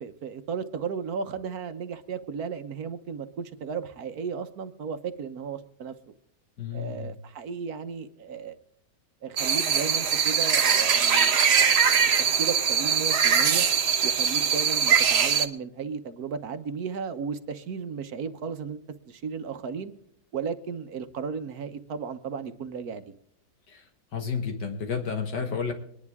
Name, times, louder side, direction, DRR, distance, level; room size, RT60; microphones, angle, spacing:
voice 1, 0.0-6.1 6.7-8.6 9.2-11.5 12.4-13.7 14.0-18.8 19.1-19.9 20.3-23.0, right 6 dB, 60° right, 9 dB, 1.4 m, -34 dB
voice 2, 6.6-7.1 23.7-25.7, left 6 dB, 75° left, 5 dB, 2.1 m, -31 dB
sound 1, 9.4-15.5, right 7 dB, 45° right, 1.0 m, -22 dB
22.5 x 11.0 x 3.6 m, 0.71 s
omnidirectional pair, 1.9 m